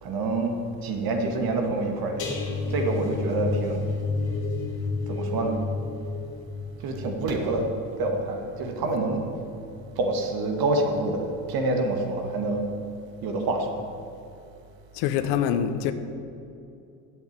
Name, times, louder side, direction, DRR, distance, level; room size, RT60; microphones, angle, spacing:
voice 1, 0.0-0.5 0.8-2.2 2.7-3.8 5.1-5.6 6.8-7.7 8.0-9.2 10.0-11.2 11.5-12.7 13.2-13.7, right 2 dB, 60° right, 3 dB, 2.0 m, -26 dB
sound 1, 2.2-9.3 9.6-9.9 10.3-10.4, left 3 dB, 45° left, 2.9 m, -31 dB
voice 2, 14.9-15.9, left 9 dB, 85° left, 10 dB, 1.0 m, -25 dB
8.3 x 7.9 x 8.9 m, 2.6 s
cardioid pair, 115°, 40 cm